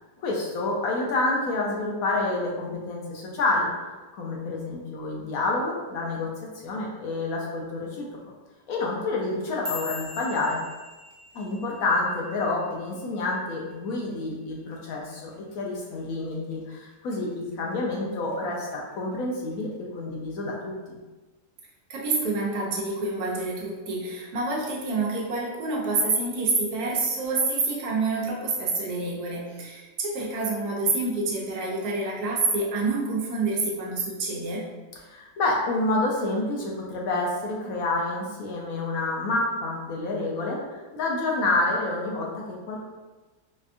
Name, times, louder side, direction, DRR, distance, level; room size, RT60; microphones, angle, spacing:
voice 1, 0.2-3.7 4.1-6.3 6.6-8.0 8.7-10.6 11.3-21.0 35.1-42.9, left 2 dB, 70° left, -2 dB, 1.0 m, -28 dB
sound 1, 9.3-13.6 13.9-14.3 14.7-15.1 15.5-15.7 16.3-16.7 17.1-17.9 18.3-18.7 19.5-19.6, left 4 dB, 40° right, 0.8 m, -41 dB
voice 2, 21.9-34.7, right 3 dB, 70° right, -3 dB, 1.2 m, -27 dB
4.3 x 2.3 x 2.4 m, 1.2 s
omnidirectional pair, 1.7 m